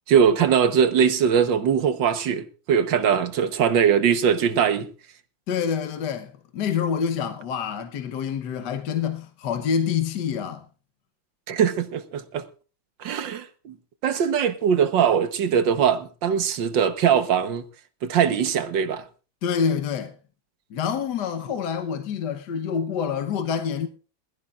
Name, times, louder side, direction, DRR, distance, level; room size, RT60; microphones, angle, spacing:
voice 1, 0.1-4.9 11.5-12.4 13.0-13.7 14.0-17.6 18.0-19.0, right 7 dB, 70° right, 1.7 m, -21 dB
voice 2, 5.5-10.6 19.4-20.1 20.7-23.9, left 7 dB, 65° left, 1.5 m, -27 dB
21.0 x 14.5 x 2.4 m
omnidirectional pair, 2.1 m